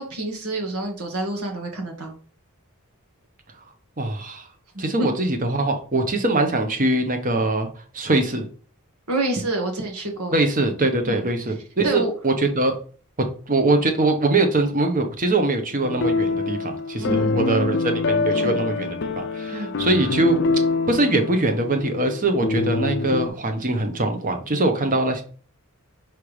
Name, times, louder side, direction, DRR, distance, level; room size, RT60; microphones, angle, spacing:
voice 1, 0.0-2.1 4.7-5.1 9.1-10.3 11.1-11.3 11.8-12.1 17.0-17.8 18.3-18.6 19.5-19.7, right 2 dB, 90° right, 3 dB, 1.8 m, -28 dB
voice 2, 4.0-4.5 4.8-7.7 7.9-8.5 10.3-12.8 13.5-20.4 20.9-25.2, right 2 dB, 40° right, 5 dB, 1.1 m, -22 dB
sound 1, 15.8-23.3, left 3 dB, 50° left, 0.5 m, -25 dB
6.0 x 3.5 x 4.9 m, 0.41 s
head